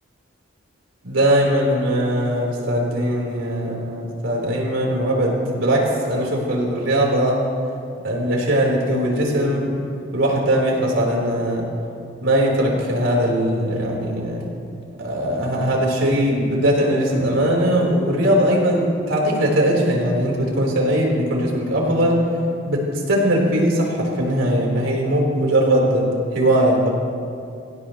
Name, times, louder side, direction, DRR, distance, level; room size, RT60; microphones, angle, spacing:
voice 1, 1.0-7.4 8.0-9.7 10.1-11.7 12.2-14.5 15.0-22.2 22.6-27.0, right 1 dB, 80° right, -3 dB, 4.3 m, -20 dB
26.5 x 16.0 x 3.2 m, 2.5 s
head